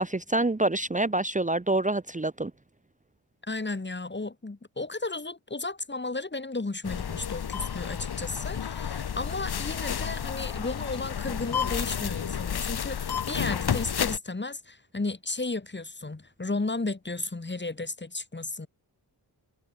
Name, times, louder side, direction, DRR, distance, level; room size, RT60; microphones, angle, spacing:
voice 1, 0.0-2.5, right 2 dB, 20° right, 1.3 m, -26 dB
voice 2, 3.4-18.7, left 3 dB, 25° left, 2.5 m, -34 dB
sound 1, 6.8-14.2, left 8 dB, 65° left, 1.2 m, -31 dB
wide cardioid pair, 75°, 42 cm